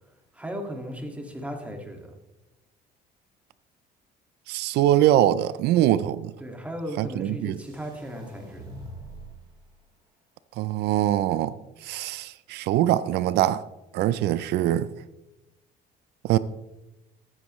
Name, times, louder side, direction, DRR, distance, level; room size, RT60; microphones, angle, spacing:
voice 1, 0.3-2.2 6.4-8.6, equal, 10° right, 2.0 m, -36 dB
voice 2, 4.5-6.3 7.0-7.6 10.6-11.5 11.8-13.6 13.9-14.9 16.2-16.4, right 13 dB, 80° right, 0.5 m, -23 dB
sound 1, 7.5-9.5, right 1 dB, 30° right, 3.8 m, -44 dB
14.0 x 8.8 x 3.1 m
cardioid pair, 110°, 17 cm